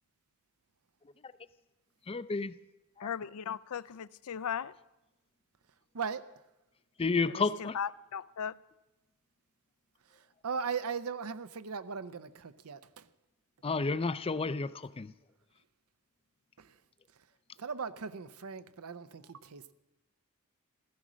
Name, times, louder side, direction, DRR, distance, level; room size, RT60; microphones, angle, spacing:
voice 1, 2.1-2.5 3.0-3.1 7.0-7.8 13.6-14.7 15.0-15.1, left 4 dB, 25° left, 0.4 m, -31 dB
voice 2, 3.0-4.7 7.3-8.5, left 8 dB, 80° left, 0.5 m, -37 dB
voice 3, 5.9-6.3 10.4-13.1 16.6-16.7 17.6-19.7, right 6 dB, 85° right, 0.7 m, -38 dB
15.0 x 14.0 x 6.3 m
head